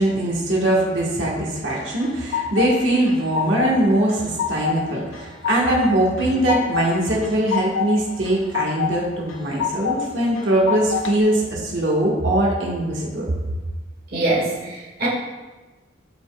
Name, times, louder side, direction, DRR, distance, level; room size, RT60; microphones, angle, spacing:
voice 1, 0.0-13.3, right 1 dB, 70° right, -4 dB, 1.5 m, -21 dB
sound 1, 1.7-2.7 3.1-3.8 4.1-4.8 5.1-5.8 6.2-6.9 7.2-7.9 8.2-8.9 9.3-10.0 10.4-11.1, left 8 dB, 85° left, 1.0 m, -25 dB
voice 2, 14.1-15.1, right 2 dB, 50° right, -5 dB, 1.6 m, -23 dB
12.5 x 5.3 x 2.4 m, 1.2 s
head